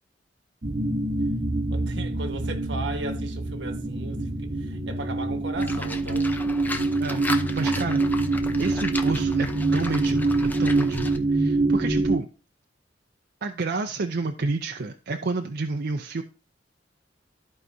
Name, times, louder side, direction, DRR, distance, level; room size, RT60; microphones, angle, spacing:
sound 1, 0.6-12.2, right 2 dB, 40° right, 0.9 m, -25 dB
voice 1, 1.7-6.4, right 2 dB, 75° right, 1.3 m, -37 dB
Livestock farm animals working animals, 5.6-11.2, left 2 dB, 10° left, 0.6 m, -35 dB
voice 2, 7.5-12.3 13.4-16.2, right 3 dB, 60° right, 0.5 m, -30 dB
14.0 x 4.7 x 2.7 m
head